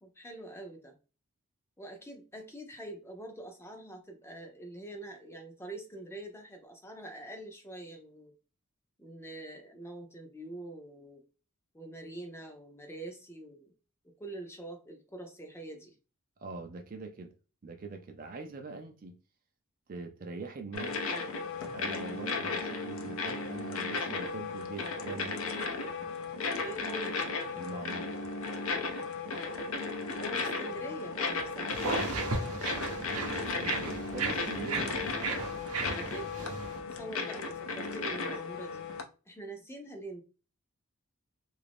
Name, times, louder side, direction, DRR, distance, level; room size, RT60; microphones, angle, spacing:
voice 1, 0.0-0.9 1.8-8.3 9.0-11.3 11.7-13.7 14.2-15.9 22.3-22.6 26.6-27.2 30.2-31.8 35.8-36.6 36.9-38.8 39.3-40.2, right 1 dB, 10° left, 0.6 m, -45 dB
voice 2, 16.4-17.3 17.6-19.2 19.9-21.0 21.7-25.4 27.5-28.2 32.6-32.9 33.6-34.9, right 3 dB, 40° right, 0.4 m, -43 dB
sound 1, 20.7-39.0, left 4 dB, 65° left, 0.6 m, -35 dB
sound 2, 31.3-35.8 36.2-36.3 36.5-37.1, equal, 30° left, 1.0 m, -52 dB
sound 3, 31.7-36.8, right 3 dB, 80° right, 0.7 m, -35 dB
2.9 x 2.5 x 3.4 m
head